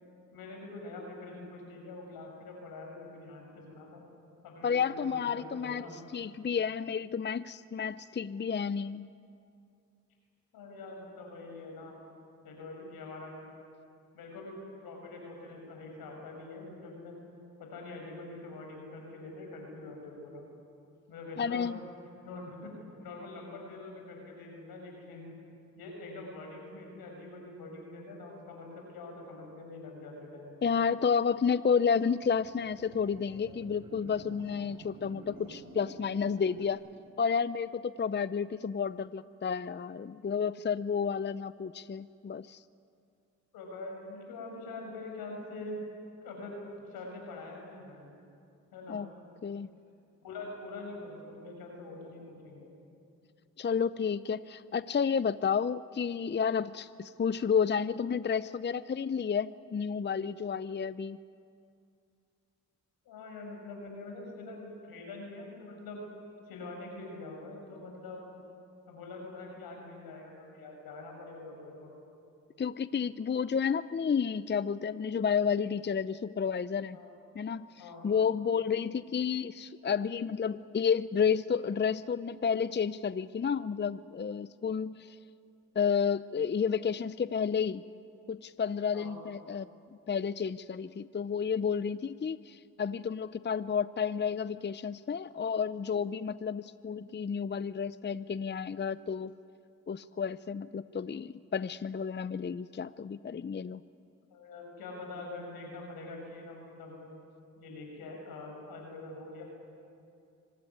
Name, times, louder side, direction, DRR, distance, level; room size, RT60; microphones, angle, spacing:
voice 1, 0.3-4.0 4.4-6.0 10.5-12.0 12.4-13.5 14.1-17.1 17.6-20.4 21.1-21.7 22.2-22.7 23.0-25.3 25.8-30.7 43.5-45.8 46.2-46.5 46.9-48.2 48.7-49.0 50.2-52.7 63.0-66.0 66.5-68.2 68.9-71.9 76.9-77.1 77.8-78.1 88.9-89.2 104.3-107.1 107.6-109.4, left 2 dB, 85° left, 1 dB, 6.4 m, -44 dB
voice 2, 4.6-5.8 6.1-9.1 21.4-21.8 30.6-36.8 37.2-42.6 48.9-49.1 49.4-49.7 53.6-61.2 72.6-77.0 77.4-77.7 78.0-85.2 85.7-87.8 88.3-89.7 90.1-99.3 99.9-103.8, left 6 dB, 30° left, 16 dB, 0.6 m, -31 dB
sound 1, 31.9-36.7, right 2 dB, 65° right, 6.2 m, -51 dB
25.5 x 19.0 x 9.7 m, 2.5 s
supercardioid pair, 40°, 35 cm